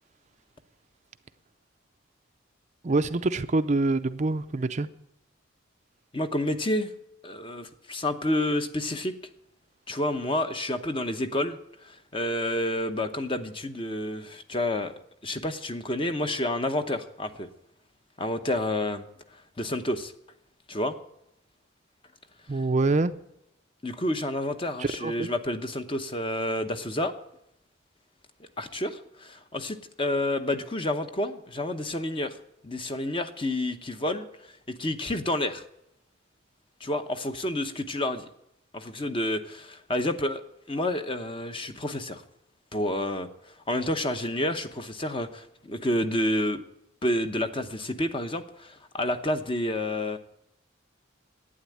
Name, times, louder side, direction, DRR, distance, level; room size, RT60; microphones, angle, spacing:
voice 1, 2.8-4.9 22.5-23.1 24.8-25.3, right 3 dB, 35° right, 10 dB, 0.5 m, -25 dB
voice 2, 6.1-6.9 7.2-9.1 9.9-14.9 15.2-17.5 18.2-19.0 19.6-20.1 20.7-20.9 23.8-27.1 28.6-32.4 32.6-34.3 34.7-35.6 36.8-38.3 38.7-40.4 40.7-42.2 42.7-43.3 43.7-46.6 47.0-50.2, left 1 dB, 25° left, 8 dB, 0.9 m, -29 dB
11.5 x 9.2 x 8.6 m, 0.79 s
head